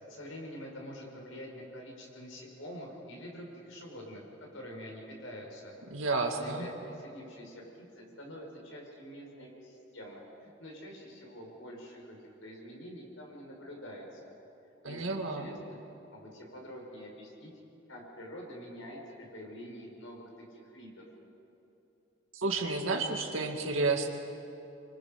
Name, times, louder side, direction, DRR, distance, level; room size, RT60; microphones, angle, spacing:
voice 1, 0.1-4.2 4.5-5.8 6.3-14.2 14.8-15.8 16.1-17.5 17.9-21.0, equal, 85° left, -1 dB, 5.4 m, -46 dB
voice 2, 5.9-6.7 14.8-15.5 22.3-24.1, right 3 dB, 90° right, 3 dB, 2.2 m, -31 dB
26.0 x 24.5 x 5.3 m, 2.9 s
head